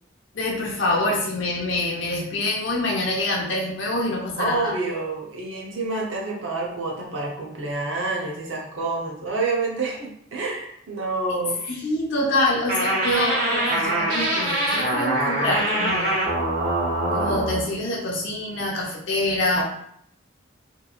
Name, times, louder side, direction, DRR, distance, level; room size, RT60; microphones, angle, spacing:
voice 1, 0.3-4.7 11.6-16.2 17.1-19.6, left 1 dB, 70° left, -3 dB, 0.9 m, -25 dB
voice 2, 4.4-11.6 19.6-19.7, right 3 dB, 80° right, -2 dB, 0.8 m, -28 dB
sound 1, 12.7-17.6, right 1 dB, 50° right, 1.0 m, -23 dB
3.0 x 2.7 x 2.4 m, 0.70 s
head